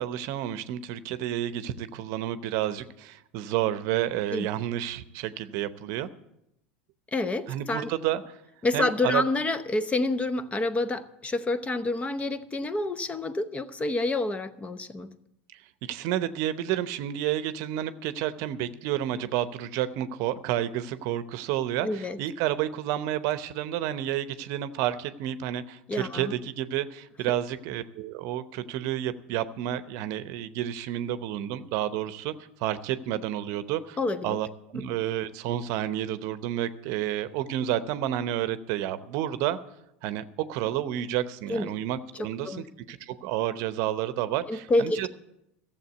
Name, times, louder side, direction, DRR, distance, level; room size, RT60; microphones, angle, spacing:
voice 1, 0.0-6.1 7.5-8.4 8.7-9.2 15.5-15.6 15.9-32.3 32.6-34.0 34.2-34.5 34.7-39.6 40.0-42.6 42.9-45.1, right 12 dB, 60° right, 13 dB, 0.8 m, -30 dB
voice 2, 7.1-7.9 8.6-15.1 21.8-22.2 25.9-26.3 34.0-34.4 41.5-41.7 42.4-42.6 44.5-45.1, left 2 dB, 20° left, 13 dB, 0.8 m, -28 dB
14.0 x 7.4 x 8.1 m, 0.84 s
hypercardioid pair, 85°, 6 cm